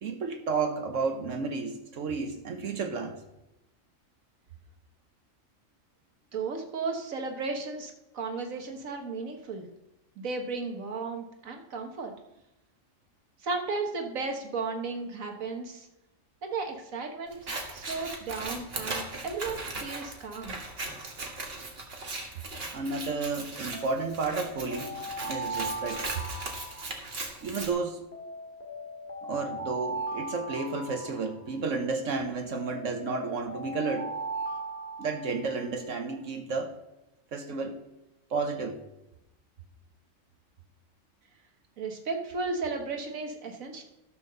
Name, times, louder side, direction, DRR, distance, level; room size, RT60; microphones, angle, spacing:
voice 1, 0.0-3.2 22.7-26.1 27.4-28.0 29.2-34.1 35.0-36.7 37.3-37.8 38.3-38.8, right 4 dB, 70° right, 5 dB, 1.3 m, -32 dB
voice 2, 6.3-9.7 10.2-12.1 13.4-15.9 16.4-17.4 17.7-20.6 41.8-43.8, right 4 dB, 85° right, 4 dB, 1.7 m, -34 dB
Scissors, 17.3-27.7, right 2 dB, 45° right, 1.8 m, -38 dB
Alarm, 23.7-27.4 28.1-31.8 32.5-35.7, right 2 dB, 10° left, 1.9 m, -38 dB
13.0 x 4.5 x 6.6 m, 0.95 s
omnidirectional pair, 1.4 m